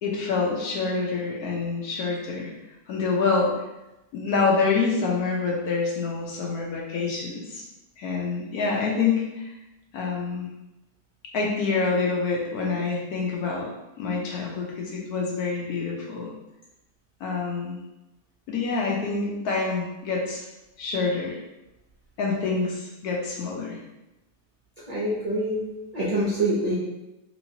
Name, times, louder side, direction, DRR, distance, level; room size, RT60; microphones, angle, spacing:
voice 1, 0.0-2.5 2.9-3.5 4.1-7.6 8.0-9.6 9.9-10.5 11.3-13.7 14.0-16.3 17.2-17.8 18.5-20.5 20.8-21.4 22.2-23.8, left 4 dB, 75° left, -2 dB, 1.1 m, -26 dB
voice 2, 24.9-25.7 25.9-26.7, right 1 dB, 55° right, -8 dB, 0.4 m, -25 dB
3.0 x 3.0 x 2.7 m, 0.97 s
omnidirectional pair, 1.7 m